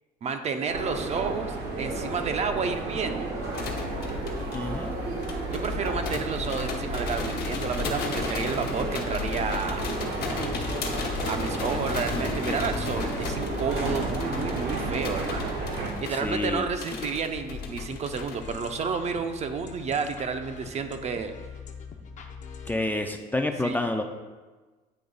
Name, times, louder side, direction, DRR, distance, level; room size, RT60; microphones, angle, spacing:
voice 1, 0.2-3.3 5.5-9.9 11.3-15.5 15.8-21.3 23.6-24.0, right 5 dB, 40° right, 7 dB, 0.5 m, -31 dB
sound 1, 0.7-15.9, right 3 dB, 85° right, 1.2 m, -32 dB
sound 2, 3.5-18.5, left 5 dB, 70° left, 1.1 m, -34 dB
voice 2, 4.5-4.9 16.1-16.7 22.7-24.0, left 2 dB, 10° left, 4 dB, 0.4 m, -28 dB
sound 3, 17.4-22.7, left 6 dB, 45° left, 0.6 m, -43 dB
8.6 x 3.1 x 3.9 m, 1.3 s
cardioid pair, 110°, 17 cm